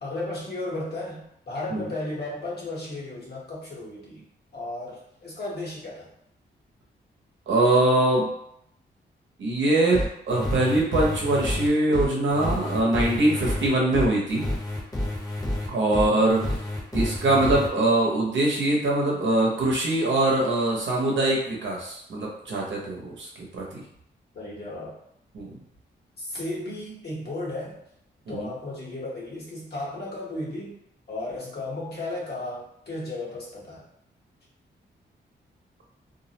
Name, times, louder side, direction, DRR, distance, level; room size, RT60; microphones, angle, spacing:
voice 1, 0.0-4.2 4.5-6.1 24.3-25.0 26.2-27.8 28.3-30.8 31.1-33.8, left 2 dB, 60° left, -6 dB, 1.1 m, -34 dB
voice 2, 7.5-8.3 9.4-14.4 15.7-16.4 16.9-23.3 23.5-23.8 25.3-25.6 28.3-28.5, right 2 dB, 80° right, -3 dB, 0.8 m, -23 dB
sound 1, 9.9-17.7, left 1 dB, 20° left, 0.8 m, -29 dB
2.4 x 2.0 x 2.8 m, 0.73 s
cardioid pair, 65°, 19 cm